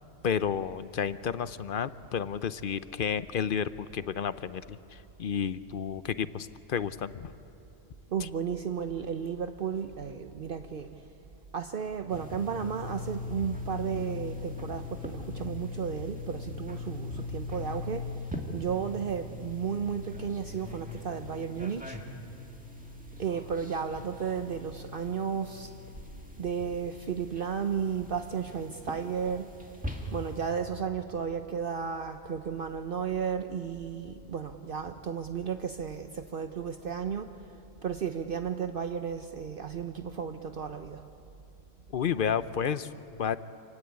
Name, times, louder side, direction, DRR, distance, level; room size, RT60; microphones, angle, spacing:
voice 1, 0.2-7.3 8.2-8.3 41.9-43.4, left 7 dB, 60° left, 14 dB, 0.8 m, -31 dB
voice 2, 8.1-10.9 11.5-18.0 18.5-21.9 23.2-25.7 26.4-29.4 30.1-36.0 36.3-37.3 37.8-41.0, right 7 dB, 60° right, 8 dB, 1.0 m, -33 dB
sound 1, 12.1-30.5, left 2 dB, 10° right, 2.1 m, -40 dB
27.5 x 16.5 x 9.5 m, 2.9 s
omnidirectional pair, 1.1 m